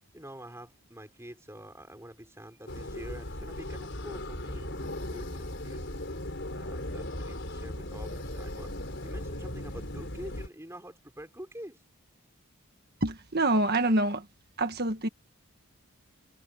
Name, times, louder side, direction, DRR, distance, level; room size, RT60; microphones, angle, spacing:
voice 1, 0.1-6.0 6.5-8.7 9.0-11.8, right 1 dB, 10° right, 6.2 m, -46 dB
sound 1, 2.7-10.5, left 1 dB, 50° left, 5.0 m, -37 dB
voice 2, 13.0-14.3 14.6-15.1, right 2 dB, 45° right, 1.6 m, -26 dB
head